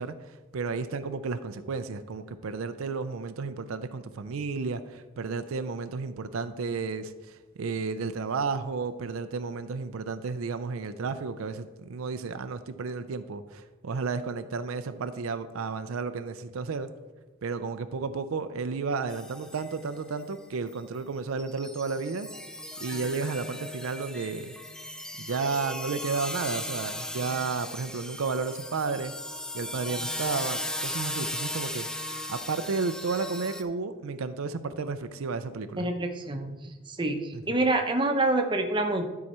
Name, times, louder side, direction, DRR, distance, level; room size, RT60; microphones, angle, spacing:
voice 1, 0.0-16.9 17.4-22.3 22.8-24.5 25.2-29.1 29.5-31.9 32.3-35.9 37.3-37.6, right 4 dB, 80° right, 11 dB, 0.5 m, -32 dB
sound 1, 19.1-19.9 20.2-20.3 20.7-21.1 21.4-33.6, left 1 dB, 5° left, 0.3 m, -37 dB
voice 2, 35.8-36.5 36.9-37.2 37.5-39.1, right 2 dB, 20° right, 4 dB, 0.7 m, -26 dB
12.0 x 4.8 x 4.3 m, 1.2 s
head